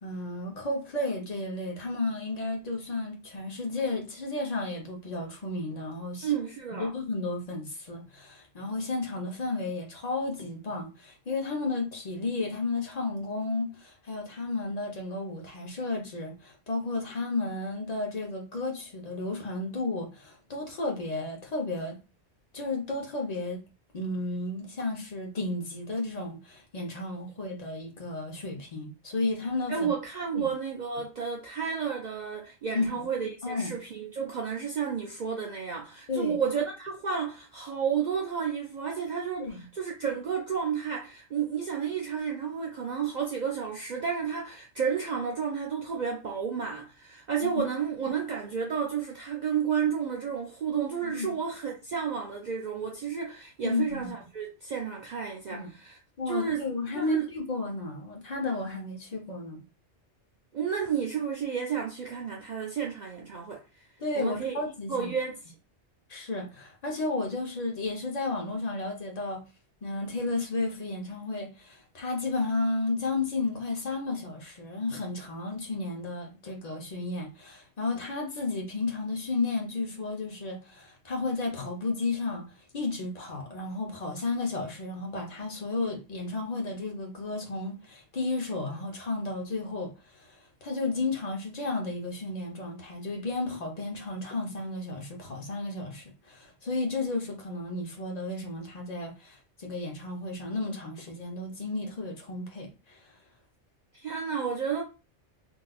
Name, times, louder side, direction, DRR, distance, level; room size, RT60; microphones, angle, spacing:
voice 1, 0.0-6.3 6.8-22.0 22.5-23.6 23.9-29.9 30.3-30.5 32.7-32.9 33.4-33.8 36.1-36.4 39.4-39.6 51.0-51.3 53.6-54.1 55.5-55.7 56.2-59.6 64.0-65.1 66.1-69.4 69.8-82.5 82.7-89.9 90.3-103.0, left 2 dB, 40° left, 0.8 m, -33 dB
voice 2, 6.2-6.9 29.7-56.0 56.3-56.6 56.9-57.3 60.5-63.9 64.1-64.6 64.9-65.4 104.0-104.8, right 7 dB, 55° right, 0.5 m, -31 dB
3.7 x 2.6 x 2.3 m
omnidirectional pair, 1.2 m